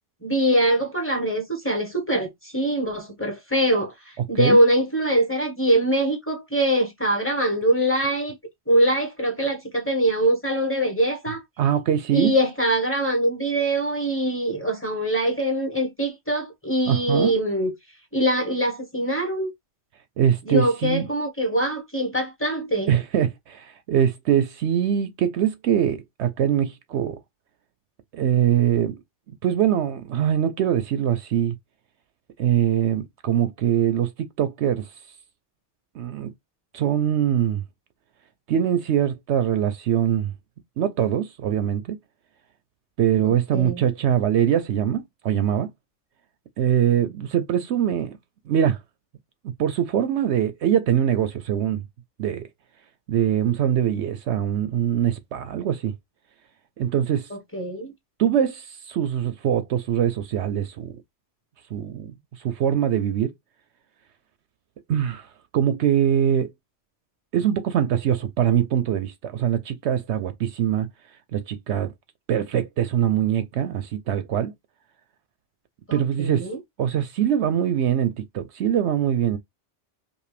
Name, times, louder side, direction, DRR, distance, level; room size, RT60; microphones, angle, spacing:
voice 1, 0.2-8.3 8.7-11.4 12.1-17.7 18.1-19.5 20.5-22.9 43.2-43.8 57.5-57.9 75.9-76.6, right 1 dB, 10° left, 1.2 m, -23 dB
voice 2, 11.6-12.3 16.9-17.3 20.2-21.1 22.9-27.2 28.1-28.9 29.3-31.6 32.4-34.9 35.9-36.3 36.7-37.6 38.5-40.3 40.8-42.0 43.0-45.7 46.6-48.1 48.5-48.8 49.6-51.8 52.2-52.5 53.1-55.9 56.8-57.3 58.2-60.9 61.7-63.3 64.9-65.3 65.5-66.5 67.3-70.9 71.3-71.9 72.3-74.5 75.9-76.5 76.8-79.4, right 9 dB, 70° right, 0.8 m, -23 dB
5.2 x 2.3 x 3.3 m
omnidirectional pair, 1.2 m